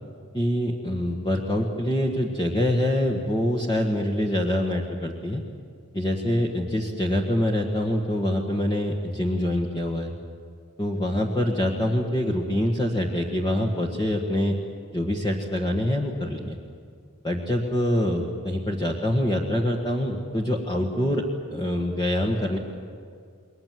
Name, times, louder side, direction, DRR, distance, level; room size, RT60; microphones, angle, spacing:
voice 1, 0.3-5.4 5.9-10.1 10.8-14.6 14.9-16.6 17.2-22.6, left 1 dB, 20° left, -1 dB, 1.6 m, -25 dB
29.5 x 22.0 x 7.7 m, 2.2 s
head